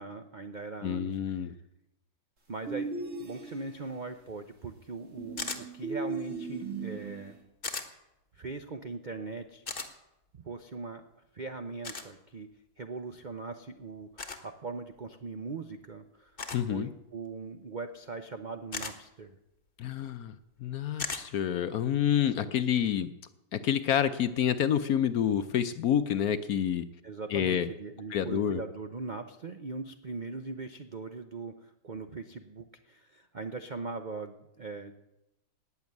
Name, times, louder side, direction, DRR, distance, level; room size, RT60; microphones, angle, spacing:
voice 1, 0.0-1.5 2.5-7.4 8.3-9.6 10.3-11.0 11.3-12.5 12.8-16.4 16.7-19.3 27.0-34.9, right 3 dB, 60° right, 7 dB, 0.4 m, -40 dB
voice 2, 0.8-1.5 16.5-16.9 19.8-23.1 23.5-26.9 27.3-27.7 28.1-28.6, left 9 dB, 65° left, 11 dB, 1.0 m, -28 dB
sound 1, 2.7-3.9 5.2-7.4, right 4 dB, 40° right, 2.8 m, -37 dB
sound 2, 5.4-5.6 7.6-7.9 9.7-9.9 11.8-12.1 14.2-14.4 16.4-16.7 18.7-18.9 21.0-21.2, left 4 dB, 30° left, 1.4 m, -36 dB
18.0 x 7.1 x 9.6 m, 0.91 s
omnidirectional pair, 2.0 m